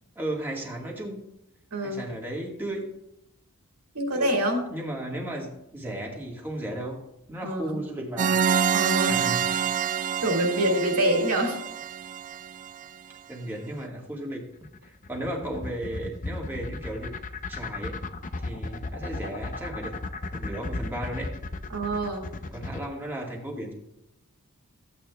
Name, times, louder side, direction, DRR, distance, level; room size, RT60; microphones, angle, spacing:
voice 1, 0.1-1.2 1.8-2.9 4.1-4.4 4.7-7.0 7.3-8.4 9.1-9.6 13.3-14.4 14.9-17.1 17.5-17.9 18.4-19.9 20.3-21.3 22.5-23.7, right 1 dB, 10° right, -2 dB, 1.6 m, -35 dB
voice 2, 1.7-2.1 3.9-4.7 7.4-7.8 8.7-9.3 10.2-11.6 21.7-22.3, right 1 dB, 80° right, 1 dB, 2.1 m, -26 dB
sound 1, 8.2-12.8, right 7 dB, 35° right, 0.3 m, -26 dB
sound 2, 14.6-22.9, left 3 dB, 35° left, 0.6 m, -34 dB
14.0 x 8.6 x 2.3 m, 0.82 s
head